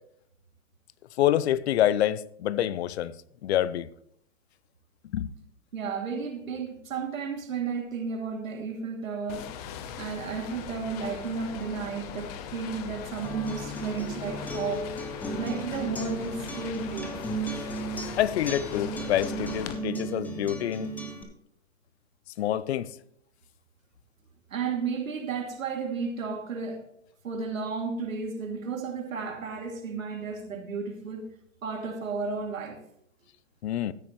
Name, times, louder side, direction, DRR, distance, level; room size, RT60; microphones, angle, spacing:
voice 1, 1.2-3.1 3.4-3.9 5.1-5.3 18.2-20.9 22.4-22.9 33.6-33.9, left 12 dB, 55° left, 0.6 m, -26 dB
voice 2, 5.7-9.6 10.0-14.9 15.3-17.5 24.5-26.8 27.2-32.8, right 5 dB, 80° right, 2.8 m, -33 dB
sound 1, 9.3-19.7, left 8 dB, 30° left, 0.9 m, -40 dB
Acoustic guitar, 13.2-21.2, right 2 dB, 5° left, 1.0 m, -35 dB
13.5 x 9.4 x 3.1 m
hypercardioid pair, 145°, 39 cm